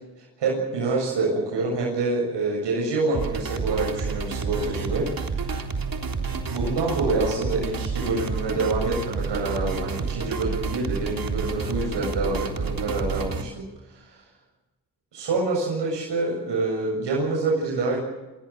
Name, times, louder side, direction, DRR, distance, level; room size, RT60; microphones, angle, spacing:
voice 1, 0.4-5.5 6.5-14.2 15.1-18.0, right 3 dB, 80° right, -2 dB, 7.5 m, -27 dB
sound 1, 3.1-13.4, right 4 dB, 55° right, 3.7 m, -29 dB
27.5 x 18.0 x 7.5 m, 1.1 s
cardioid pair, 60°, 42 cm